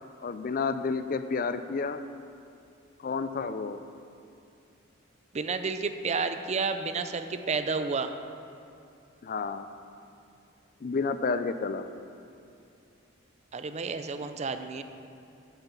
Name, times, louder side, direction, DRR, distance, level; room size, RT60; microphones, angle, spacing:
voice 1, 0.2-2.0 3.0-3.8 9.2-9.7 10.8-11.8, left 4 dB, 45° left, 10 dB, 0.4 m, -30 dB
voice 2, 5.3-8.1 13.5-14.8, right 4 dB, 35° right, 9 dB, 0.5 m, -31 dB
8.2 x 6.7 x 7.4 m, 2.5 s
head